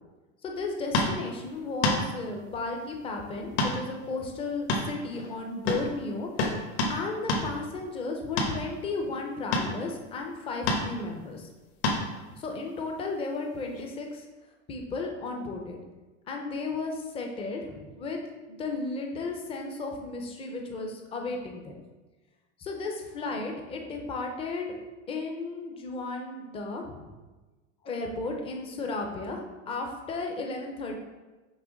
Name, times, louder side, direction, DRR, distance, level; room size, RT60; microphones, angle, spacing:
voice 1, 0.4-11.5 12.3-14.3 14.7-15.8 16.3-18.2 18.5-21.7 22.6-24.7 25.1-27.1 27.8-29.4 29.7-31.0, left 3 dB, 15° left, 2 dB, 0.5 m, -34 dB
sound 1, 0.9-1.2 1.8-2.0 3.6-3.8 4.0-4.2 4.7-5.4 5.7-5.9 6.4-7.0 7.3-7.5 8.4-8.6 9.5-9.7 10.7-10.8 11.8-12.1 13.7-13.8, left 2 dB, 55° left, 1.2 m, -27 dB
6.1 x 3.4 x 5.0 m, 1.2 s
supercardioid pair, 165°, 37 cm